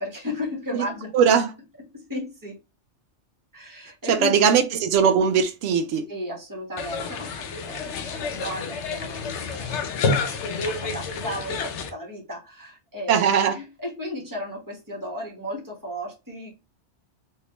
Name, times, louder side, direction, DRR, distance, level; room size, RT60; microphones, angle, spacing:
voice 1, 0.0-1.1 1.9-2.5 3.5-4.4 6.1-16.5, left 1 dB, 15° right, 1.2 m, -35 dB
voice 2, 1.1-1.5 4.1-6.1 13.1-13.5, right 7 dB, 90° right, 0.9 m, -20 dB
sound 1, 6.8-11.9, left 4 dB, 75° left, 0.9 m, -29 dB
3.3 x 2.8 x 2.8 m
omnidirectional pair, 1.2 m